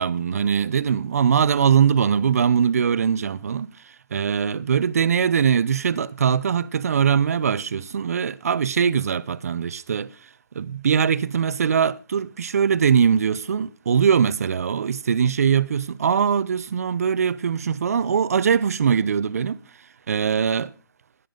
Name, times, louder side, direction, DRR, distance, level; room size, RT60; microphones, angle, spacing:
voice 1, 0.0-10.3 10.5-19.6 20.1-20.7, right 7 dB, 50° right, 0.6 m, -21 dB
12.0 x 11.0 x 3.8 m
hypercardioid pair, 160°, 11 cm